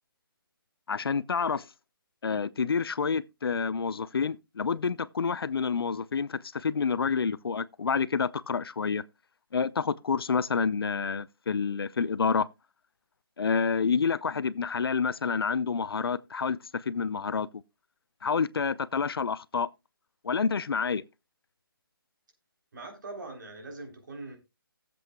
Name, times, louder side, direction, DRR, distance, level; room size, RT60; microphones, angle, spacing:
voice 1, 0.9-1.6 2.2-9.0 9.5-12.5 13.4-17.5 18.2-19.7 20.2-21.0, left 5 dB, 85° left, 0.6 m, -28 dB
voice 2, 22.7-24.4, right 2 dB, 55° right, 3.4 m, -42 dB
17.5 x 7.7 x 2.3 m
hypercardioid pair, 170°, 12 cm